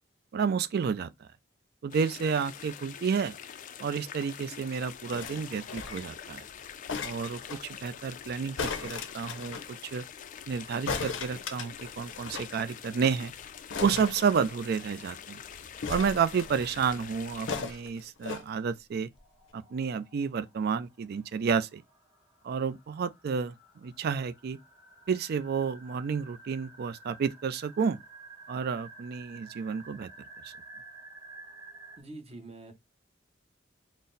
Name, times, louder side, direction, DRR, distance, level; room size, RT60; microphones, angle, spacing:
voice 1, 0.3-1.1 1.8-3.3 3.8-6.4 7.0-10.0 10.5-13.3 13.8-15.4 15.9-19.1 19.5-21.8 22.4-23.6 23.8-24.6 25.1-28.0 28.5-30.1 30.4-30.5, right 6 dB, 55° right, 0.3 m, -30 dB
sound 1, 1.9-17.6, left 8 dB, 40° left, 0.3 m, -45 dB
sound 2, 5.1-6.2 6.9-7.6 8.6-9.7 10.9-12.6 12.8-12.9 13.1-13.3 13.7-14.9 15.8-16.8 17.5-18.4 19.2-19.3, left 5 dB, 80° left, 0.6 m, -37 dB
sound 3, 19.1-32.0, right 3 dB, 15° right, 1.1 m, -52 dB
voice 2, 32.0-32.7, right 2 dB, 35° right, 0.8 m, -45 dB
4.0 x 2.0 x 3.8 m
head